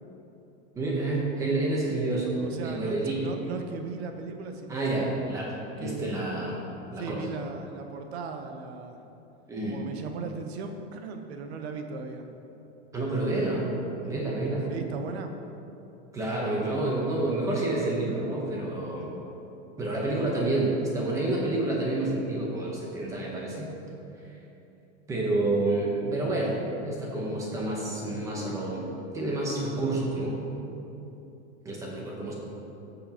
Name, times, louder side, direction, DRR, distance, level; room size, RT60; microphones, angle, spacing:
voice 1, 0.8-3.3 4.7-6.6 6.9-7.3 9.5-9.8 12.9-13.7 14.0-14.7 16.1-19.1 19.8-23.7 24.2-24.4 25.1-28.9 29.1-30.4 31.6-32.3, right 2 dB, 10° right, -3 dB, 0.8 m, -29 dB
voice 2, 2.4-5.2 5.8-6.2 7.0-9.0 9.6-12.3 14.7-15.3, right 4 dB, 60° right, 5 dB, 1.0 m, -37 dB
13.5 x 7.0 x 2.9 m, 3.0 s
supercardioid pair, 180°, 35 cm